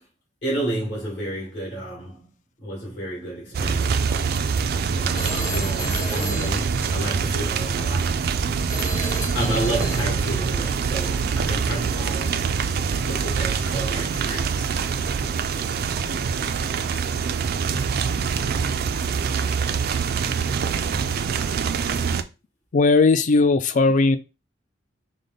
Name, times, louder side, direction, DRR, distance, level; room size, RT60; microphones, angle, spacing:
voice 1, 0.4-2.3 2.6-4.4 4.9-8.2 9.2-12.4 13.0-14.6, right 1 dB, 65° left, 2.4 m, -31 dB
sound 1, 3.5-22.2, right 6 dB, 55° right, 0.4 m, -24 dB
Telephone, 5.1-7.5 8.7-10.4, left 2 dB, 20° left, 0.8 m, -35 dB
voice 2, 22.7-24.2, left 3 dB, 40° left, 0.4 m, -17 dB
5.0 x 2.1 x 3.8 m
head